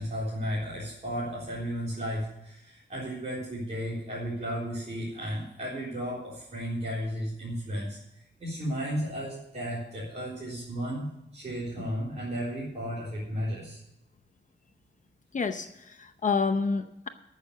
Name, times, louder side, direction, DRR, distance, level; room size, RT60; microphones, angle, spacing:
voice 1, 0.0-8.0 8.4-13.8, equal, 35° right, -7 dB, 4.1 m, -34 dB
voice 2, 15.3-17.1, left 4 dB, 45° left, 8 dB, 0.8 m, -28 dB
13.5 x 6.7 x 6.5 m, 0.85 s
wide cardioid pair, 155°, 19 cm